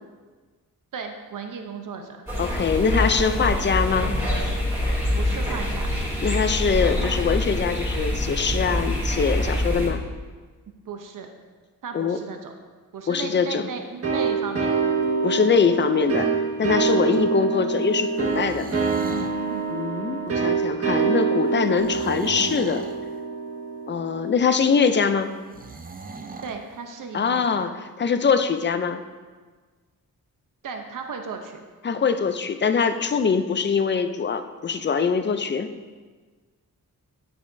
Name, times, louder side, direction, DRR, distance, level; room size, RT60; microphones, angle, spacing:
voice 1, 0.9-2.2 5.1-5.9 10.9-11.3 11.8-12.5 12.9-14.9 17.0-17.1 19.5-19.7 26.4-27.7 30.6-31.6, right 5 dB, 65° right, 4 dB, 0.8 m, -35 dB
sound 1, 2.3-9.9, left 1 dB, 5° right, 2.6 m, -25 dB
voice 2, 2.4-4.1 6.2-10.0 11.9-12.2 13.1-13.7 15.2-16.3 16.6-18.7 19.7-22.9 23.9-25.3 27.1-29.0 31.8-35.7, left 6 dB, 35° left, 9 dB, 0.4 m, -23 dB
sound 2, 14.0-24.5, right 5 dB, 45° right, 1.6 m, -25 dB
sound 3, 18.1-19.4 21.7-23.0 25.5-26.6, right 4 dB, 25° right, 0.4 m, -38 dB
10.5 x 9.4 x 2.7 m, 1.4 s
wide cardioid pair, 155°, 34 cm